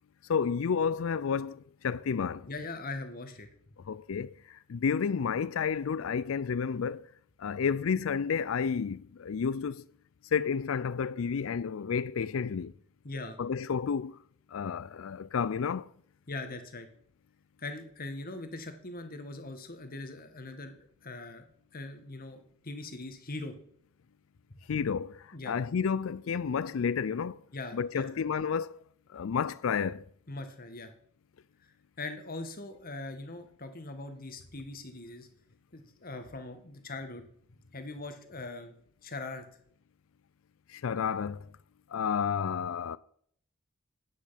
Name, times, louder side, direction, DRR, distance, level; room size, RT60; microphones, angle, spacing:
voice 1, 0.3-2.5 3.9-7.0 7.4-9.8 10.3-12.7 13.4-14.2 14.5-15.9 24.7-27.4 27.7-28.8 29.1-30.0 40.7-41.5 41.9-43.0, left 6 dB, 75° left, 0.4 m, -31 dB
voice 2, 2.5-3.5 13.0-13.4 16.3-16.9 17.6-21.4 21.7-23.5 24.7-24.8 25.3-25.6 27.5-28.2 30.3-30.9 32.0-35.3 35.7-37.2 37.5-38.7 39.0-39.4, left 2 dB, 45° left, 1.7 m, -41 dB
10.5 x 9.2 x 5.8 m
head